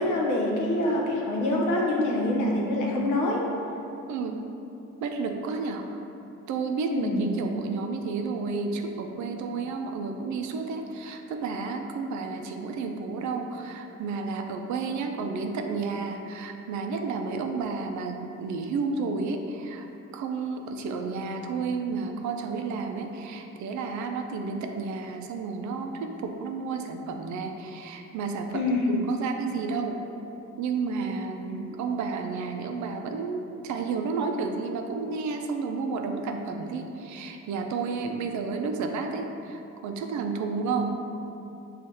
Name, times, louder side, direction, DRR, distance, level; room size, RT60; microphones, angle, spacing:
voice 1, 0.0-3.4 6.9-7.3 28.5-29.0, left 1 dB, 80° left, -3 dB, 0.9 m, -25 dB
voice 2, 4.1-4.5 5.0-6.0 6.5-28.6 28.9-30.0 30.6-41.0, right 4 dB, 70° right, 4 dB, 0.5 m, -31 dB
6.2 x 2.4 x 2.7 m, 2.9 s
cardioid pair, 90°, 30 cm